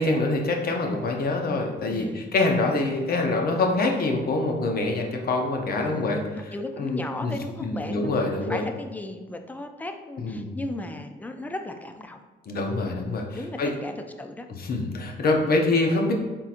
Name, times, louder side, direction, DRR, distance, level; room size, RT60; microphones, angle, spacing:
voice 1, 0.0-7.3 7.6-8.6 10.2-10.6 12.5-13.7 14.5-16.1, left 2 dB, 50° left, 2 dB, 0.7 m, -25 dB
voice 2, 1.9-2.3 5.8-6.1 6.3-12.2 13.3-14.5, left 2 dB, 10° left, 6 dB, 0.3 m, -36 dB
4.2 x 3.7 x 2.5 m, 1.3 s
cardioid pair, 90°, 20 cm